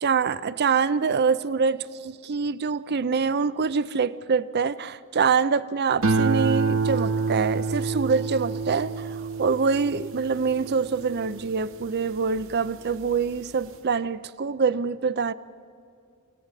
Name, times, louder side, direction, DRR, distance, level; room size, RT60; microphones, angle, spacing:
voice 1, 0.0-9.1 9.4-15.3, right 5 dB, 50° right, 15 dB, 0.6 m, -25 dB
sound 1, 6.0-12.5 13.0-13.5, right 4 dB, 65° right, 1.0 m, -27 dB
27.5 x 18.0 x 8.2 m, 2.4 s
head